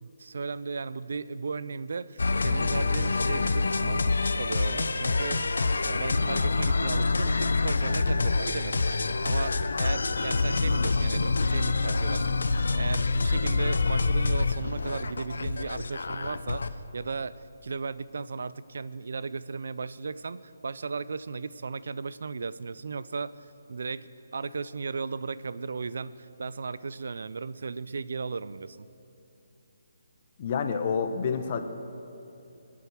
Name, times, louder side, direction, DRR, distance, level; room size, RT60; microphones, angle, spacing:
voice 1, 0.0-5.4 5.8-16.6 16.9-28.9, right 4 dB, 65° right, 17 dB, 0.5 m, -36 dB
sound 1, 2.2-16.7, left 3 dB, 75° left, 0.7 m, -26 dB
voice 2, 30.4-31.6, left 6 dB, 40° left, 7 dB, 1.0 m, -28 dB
23.0 x 8.4 x 6.1 m, 2.9 s
figure-of-eight pair, 150°, 0 cm